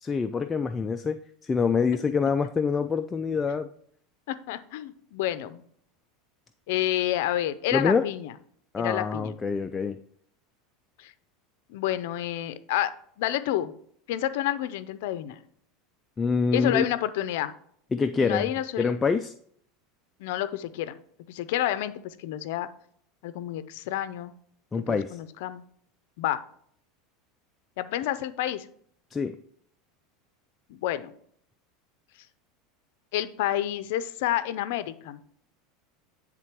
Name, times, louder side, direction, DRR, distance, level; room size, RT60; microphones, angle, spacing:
voice 1, 0.0-3.7 7.7-8.0 8.7-10.0 16.2-16.8 17.9-18.5 18.8-19.3 24.7-25.1 29.1-29.3, left 5 dB, 15° left, 8 dB, 0.3 m, -26 dB
voice 2, 4.3-5.6 6.7-8.3 8.8-9.4 11.0-11.1 11.7-13.7 14.1-15.4 16.5-17.5 18.2-19.0 20.2-21.0 21.3-22.7 23.2-24.3 24.9-25.6 26.2-26.4 27.8-28.7 30.7-31.1 33.1-35.2, left 13 dB, 75° left, 14 dB, 0.5 m, -29 dB
9.1 x 3.6 x 4.5 m, 0.63 s
supercardioid pair, 135°, 0 cm